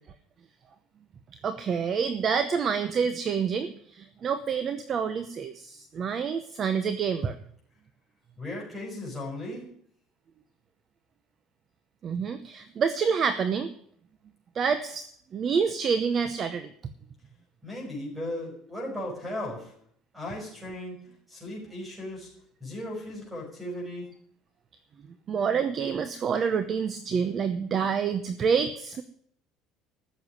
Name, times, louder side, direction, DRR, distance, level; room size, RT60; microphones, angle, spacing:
voice 1, 1.4-7.4 12.0-13.7 14.5-16.7 25.3-29.0, right 6 dB, 25° right, 11 dB, 0.7 m, -27 dB
voice 2, 8.4-9.7 17.6-19.7 20.1-21.0 21.3-22.3 22.6-24.1, left 1 dB, 5° right, 1 dB, 5.8 m, -36 dB
14.5 x 6.9 x 9.9 m, 0.63 s
cardioid pair, 180°, 0 cm